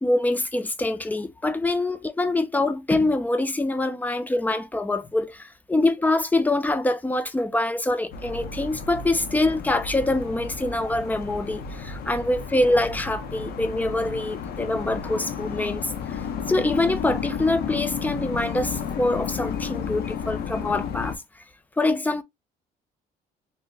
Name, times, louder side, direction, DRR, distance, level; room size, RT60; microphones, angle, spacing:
voice 1, 0.0-21.4 21.8-22.2, left 2 dB, 10° left, 0.4 m, -25 dB
sound 1, 8.1-21.2, left 6 dB, 65° left, 0.6 m, -32 dB
2.7 x 2.1 x 3.8 m
cardioid pair, 110°, 17 cm